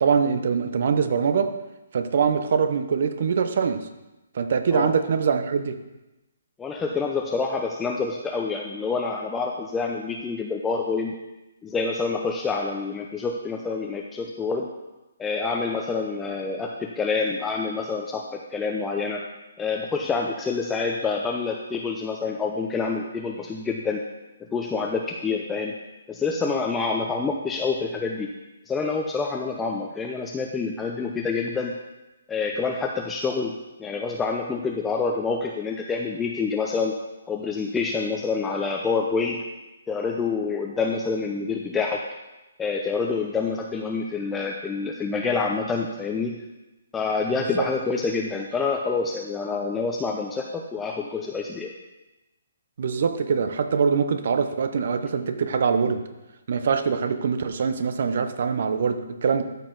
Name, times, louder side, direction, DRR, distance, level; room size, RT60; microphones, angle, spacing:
voice 1, 0.0-1.5 1.9-3.9 4.3-5.8 47.6-47.7 52.8-56.0 56.5-59.4, right 6 dB, 55° right, 9 dB, 0.8 m, -23 dB
voice 2, 6.6-11.1 11.6-14.7 15.2-19.2 19.6-24.0 24.5-25.7 26.1-28.3 28.7-31.7 32.3-33.5 33.8-36.9 37.3-39.4 39.9-42.0 42.6-46.4 46.9-51.7, left 4 dB, 10° left, 0 dB, 0.6 m, -27 dB
13.0 x 4.5 x 3.9 m, 1.0 s
figure-of-eight pair, 140°, 0 cm